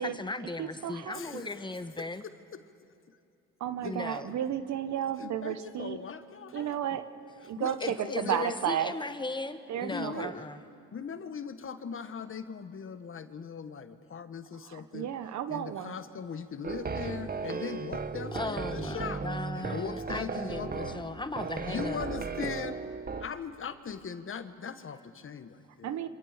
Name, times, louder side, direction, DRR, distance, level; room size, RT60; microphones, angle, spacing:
voice 1, 0.0-2.2 3.8-4.3 7.8-10.6 18.3-22.1, left 2 dB, 15° left, 10 dB, 1.4 m, -37 dB
voice 2, 0.6-1.4 3.6-6.0 6.5-7.0 7.5-8.9 9.7-10.3 14.7-16.0 25.8-26.1, right 10 dB, 65° right, 11 dB, 1.3 m, -33 dB
voice 3, 1.1-1.7 2.0-2.6 3.1-3.2 3.8-4.0 5.2-7.0 7.4-8.6 9.8-10.5 10.9-15.2 15.5-19.2 19.5-21.2 21.6-22.8 23.2-25.9, left 6 dB, 45° left, 10 dB, 1.5 m, -40 dB
sound 1, 16.6-23.3, right 4 dB, 30° right, 1.4 m, -36 dB
27.5 x 25.5 x 5.2 m, 2.7 s
supercardioid pair, 65°, 30 cm